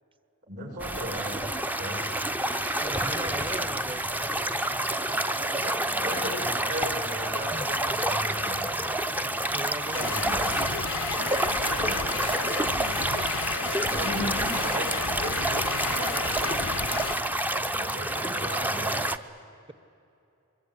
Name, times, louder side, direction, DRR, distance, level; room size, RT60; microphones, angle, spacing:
voice 1, 0.4-2.1 3.2-3.7 5.4-8.7 9.8-10.7 11.7-12.7 13.8-17.0 17.7-19.0, equal, 50° right, 1 dB, 7.0 m, -37 dB
sound 1, 0.8-19.2, right 1 dB, 10° right, 0.6 m, -28 dB
voice 2, 2.8-4.1 7.5-7.7 8.2-8.4 8.7-10.2 11.2-11.3 18.1-18.7, right 1 dB, 25° right, 13 dB, 1.0 m, -40 dB
sound 2, 9.9-17.1, left 6 dB, 65° left, 0.6 m, -34 dB
24.0 x 22.0 x 9.8 m, 2.7 s
head